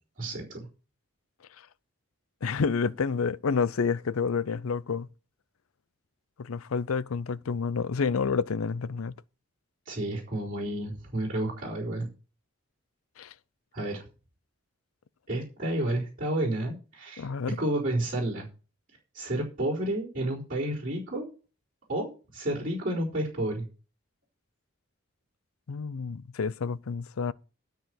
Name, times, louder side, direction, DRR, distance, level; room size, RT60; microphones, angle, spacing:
voice 1, 0.2-0.7 9.9-12.1 13.7-14.0 15.3-17.3 17.6-18.5 19.1-21.3 21.9-23.7, right 1 dB, 40° right, 4.1 m, -31 dB
voice 2, 2.4-5.1 6.4-9.1 13.2-13.3 17.2-17.6 25.7-27.3, left 5 dB, 85° left, 0.5 m, -29 dB
13.0 x 4.8 x 7.6 m
head